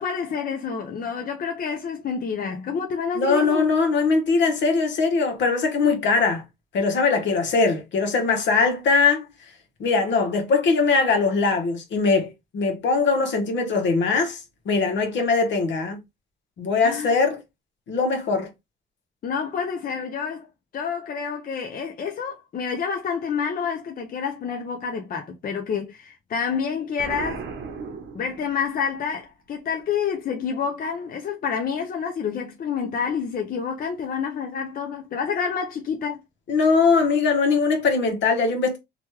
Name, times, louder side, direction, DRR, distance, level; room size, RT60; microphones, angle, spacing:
voice 1, 0.0-3.7 16.8-17.2 19.2-20.5 20.7-27.4 28.1-36.2, left 6 dB, 45° left, 0.6 m, -28 dB
voice 2, 3.2-6.4 6.7-9.3 9.8-14.4 14.7-16.0 16.6-17.4 17.9-18.5 36.5-38.8, left 4 dB, 65° left, 1.0 m, -21 dB
Explosion, 27.0-28.8, right 5 dB, 70° right, 0.8 m, -35 dB
3.0 x 2.3 x 3.0 m
cardioid pair, 90°, 20 cm